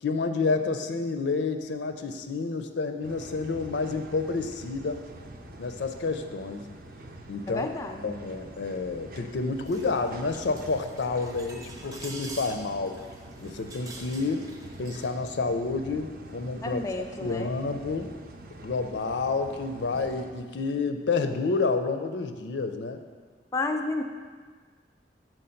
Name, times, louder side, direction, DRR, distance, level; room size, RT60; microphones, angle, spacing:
voice 1, 0.0-5.0 5.6-6.6 7.3-7.7 8.0-13.0 13.4-14.5 14.8-16.8 17.2-18.1 18.6-23.0, left 4 dB, 80° left, 8 dB, 0.5 m, -29 dB
sound 1, 3.0-20.3, right 1 dB, 55° right, 0.6 m, -45 dB
voice 2, 7.5-8.1 16.6-17.5 23.5-24.0, left 2 dB, 20° left, 5 dB, 0.3 m, -31 dB
sound 2, 9.6-15.1, right 2 dB, 20° right, 0.8 m, -46 dB
6.5 x 4.5 x 5.7 m, 1.5 s
head